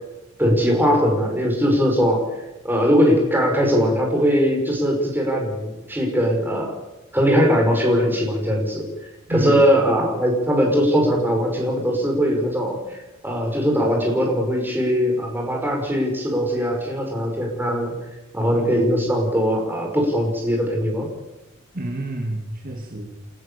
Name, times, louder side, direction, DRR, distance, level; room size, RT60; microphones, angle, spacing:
voice 1, 0.4-2.2 2.6-6.7 7.1-8.9 9.3-17.9 18.3-21.1, equal, 10° right, 1 dB, 5.6 m, -20 dB
voice 2, 9.3-9.7 18.5-18.7 21.7-23.1, right 1 dB, 40° right, 1 dB, 2.7 m, -28 dB
30.0 x 13.5 x 7.1 m, 0.97 s
head